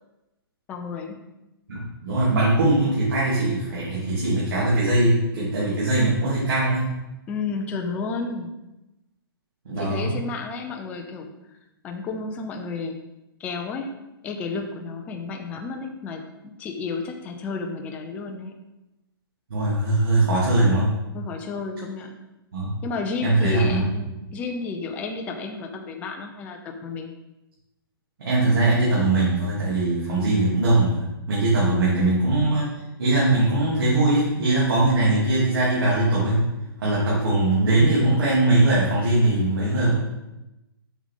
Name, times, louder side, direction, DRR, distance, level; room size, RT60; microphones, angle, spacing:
voice 1, 0.7-1.2 7.3-8.6 9.7-11.6 11.8-13.0 13.4-13.9 14.2-18.6 21.1-22.2 22.8-27.1 31.7-32.1, left 4 dB, 10° left, 3 dB, 0.5 m, -32 dB
voice 2, 1.7-6.9 9.6-10.1 19.5-20.9 22.5-22.7 23.2-23.8 28.2-32.7 33.0-36.5 36.8-39.9, right 2 dB, 65° right, -8 dB, 2.9 m, -21 dB
7.2 x 6.3 x 3.7 m, 0.96 s
hypercardioid pair, 160°, 13 cm